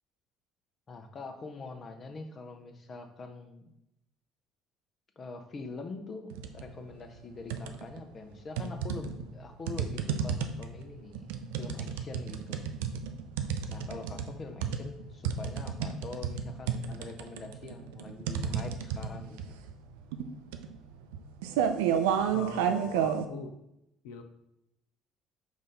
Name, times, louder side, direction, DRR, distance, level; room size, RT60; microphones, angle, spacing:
voice 1, 0.9-3.7 5.2-12.6 13.7-19.4, left 3 dB, 40° left, 6 dB, 0.7 m, -44 dB
sound 1, 6.3-6.7 7.1-8.0 8.6-23.2, right 8 dB, 75° right, 0.3 m, -31 dB
voice 2, 22.3-23.6 24.0-24.2, left 5 dB, 70° left, 7 dB, 0.4 m, -41 dB
4.9 x 2.6 x 4.1 m, 0.83 s
hypercardioid pair, 60°, 0 cm